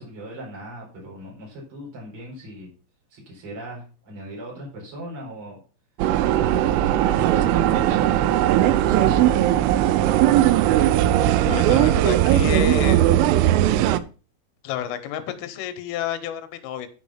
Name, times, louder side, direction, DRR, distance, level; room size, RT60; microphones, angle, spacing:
voice 1, 0.0-2.7 3.1-5.6 6.2-9.5, right 1 dB, 30° right, 5.0 m, -38 dB
sound 1, 6.0-14.0, right 12 dB, 85° right, 3.1 m, -18 dB
voice 2, 11.5-13.0 14.6-16.9, left 9 dB, 80° left, 3.5 m, -29 dB
9.2 x 6.0 x 5.7 m
omnidirectional pair, 5.8 m